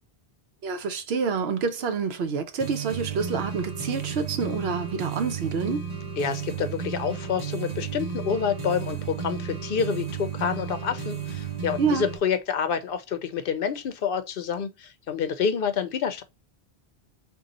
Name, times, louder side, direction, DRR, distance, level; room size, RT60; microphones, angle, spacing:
voice 1, 0.6-5.8 11.8-12.1, right 5 dB, 75° right, 0.9 m, -27 dB
sound 1, 2.6-12.2, right 7 dB, 40° right, 0.9 m, -33 dB
voice 2, 6.2-16.2, left 7 dB, 65° left, 0.7 m, -28 dB
3.8 x 2.4 x 4.0 m
omnidirectional pair, 1.1 m